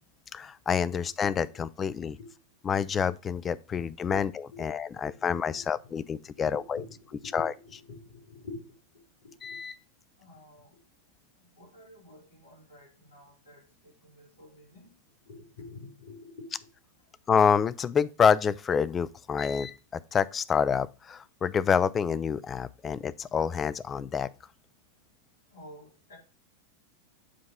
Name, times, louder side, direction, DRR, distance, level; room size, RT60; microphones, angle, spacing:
voice 1, 0.3-2.2 2.6-6.8 7.3-7.5 9.4-9.8 17.3-19.8 20.1-24.3, left 7 dB, 20° left, 0.3 m, -27 dB
voice 2, 4.5-6.0 6.3-8.6 9.2-9.6 10.2-10.8 11.4-14.9 15.3-16.5 25.5-26.2, left 3 dB, 60° left, 4.0 m, -48 dB
7.5 x 2.9 x 5.3 m
figure-of-eight pair, 90°, 0 cm